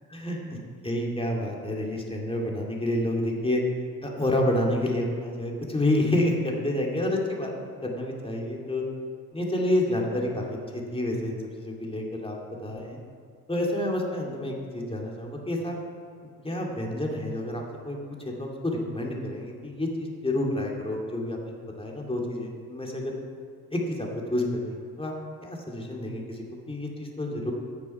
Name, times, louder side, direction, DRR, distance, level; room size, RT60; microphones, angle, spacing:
voice 1, 0.1-0.6 0.8-3.6 4.0-7.5 7.8-8.8 9.3-12.4 12.6-13.0 13.5-15.8 16.4-18.0 18.2-23.1 23.7-25.1 25.4-27.5, left 1 dB, 15° left, -1 dB, 2.4 m, -29 dB
9.9 x 7.2 x 5.8 m, 2.1 s
hypercardioid pair, 45°, 43 cm